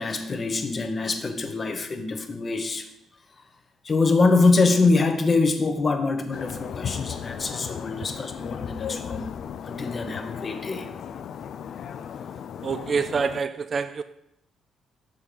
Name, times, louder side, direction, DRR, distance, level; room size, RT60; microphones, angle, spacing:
voice 1, 0.0-2.9 3.4-3.5 3.8-9.3 9.6-10.9, left 3 dB, 35° left, 7 dB, 0.8 m, -24 dB
sound 1, 6.3-13.4, left 8 dB, 65° left, 0.3 m, -36 dB
voice 2, 12.6-14.0, right 5 dB, 40° right, 11 dB, 0.3 m, -26 dB
6.6 x 4.3 x 5.3 m, 0.78 s
cardioid pair, 105°, 0 cm